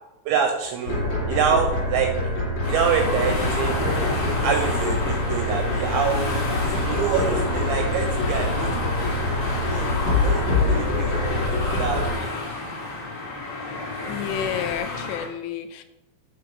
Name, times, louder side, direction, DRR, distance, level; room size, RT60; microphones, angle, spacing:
voice 1, 0.3-1.0 1.3-2.1 2.7-3.8 4.4-9.1 9.7-10.5 10.7-11.1 11.5-12.3, right 7 dB, 80° right, 2.6 m, -26 dB
sound 1, 0.9-12.1, left 2 dB, 40° left, 3.5 m, -25 dB
sound 2, 2.6-15.3, left 2 dB, 15° left, 1.6 m, -30 dB
sound 3, 4.1-14.0, left 3 dB, 65° left, 2.8 m, -46 dB
voice 2, 12.1-12.4 14.1-15.8, left 9 dB, 85° left, 3.1 m, -31 dB
9.1 x 3.8 x 5.1 m
omnidirectional pair, 5.8 m